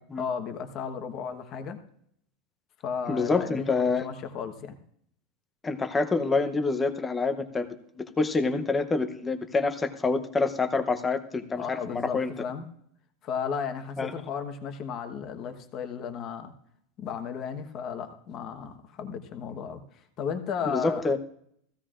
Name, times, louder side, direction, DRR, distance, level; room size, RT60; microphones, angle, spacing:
voice 1, 0.2-1.8 2.8-4.8 11.6-12.7 13.2-16.5 17.0-19.8 20.2-21.1, left 6 dB, 30° left, 7 dB, 1.2 m, -34 dB
voice 2, 3.1-4.1 5.6-7.7 8.0-12.3 14.0-14.1 20.7-21.2, left 3 dB, 10° left, 9 dB, 0.7 m, -27 dB
15.5 x 15.5 x 2.5 m, 0.67 s
supercardioid pair, 170°, 0 cm